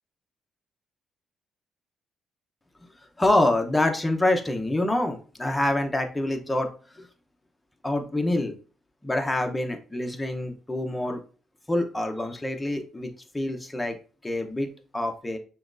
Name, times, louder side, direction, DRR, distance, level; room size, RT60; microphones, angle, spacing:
voice 1, 3.2-7.1 7.8-8.5 9.0-11.2 11.7-14.0 14.2-14.7 14.9-15.4, left 1 dB, 15° left, 4 dB, 0.7 m, -26 dB
5.8 x 2.3 x 2.5 m, 0.39 s
cardioid pair, 90°, 0 cm